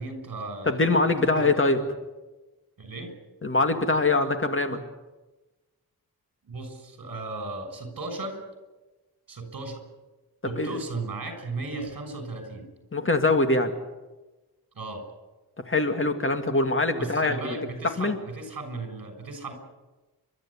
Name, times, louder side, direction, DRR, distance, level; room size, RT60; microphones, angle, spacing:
voice 1, 0.0-1.0 1.3-1.7 2.8-3.1 6.4-8.4 9.3-9.8 10.4-12.7 14.7-15.0 17.0-19.5, right 3 dB, 60° right, 6 dB, 6.6 m, -36 dB
voice 2, 0.7-1.8 3.4-4.8 10.5-10.8 12.9-13.7 15.7-17.4 18.0-18.2, left 2 dB, 35° left, 6 dB, 2.2 m, -23 dB
30.0 x 13.0 x 10.0 m, 1.1 s
wide cardioid pair, 135°, 37 cm